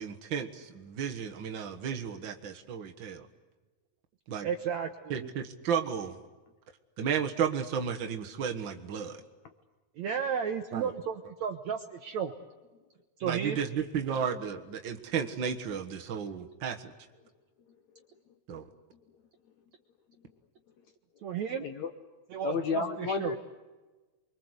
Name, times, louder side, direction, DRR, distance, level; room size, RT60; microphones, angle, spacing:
voice 1, 0.0-3.3 4.3-4.5 5.1-6.2 7.0-9.2 10.7-10.9 13.2-16.8 18.5-18.6, right 7 dB, 85° right, 4 dB, 1.0 m, -33 dB
voice 2, 4.4-5.3 10.0-12.3 13.2-13.6 21.2-21.6 22.3-23.4, right 7 dB, 70° right, 6 dB, 1.7 m, -33 dB
voice 3, 21.6-21.9 22.4-23.4, left 5 dB, 65° left, 8 dB, 1.9 m, -31 dB
29.0 x 23.5 x 8.1 m, 1.2 s
omnidirectional pair, 4.5 m